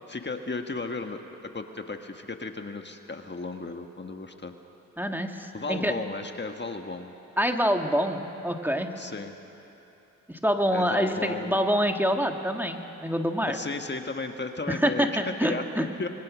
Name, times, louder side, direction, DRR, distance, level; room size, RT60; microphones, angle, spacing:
voice 1, 0.1-4.5 5.5-7.1 9.0-9.3 10.7-11.6 13.5-16.1, left 3 dB, 35° left, 5 dB, 1.5 m, -35 dB
voice 2, 5.0-5.9 7.4-8.9 10.3-13.6 14.7-15.9, equal, 5° right, 4 dB, 1.7 m, -26 dB
26.5 x 21.5 x 6.3 m, 2.9 s
cardioid pair, 55°, 32 cm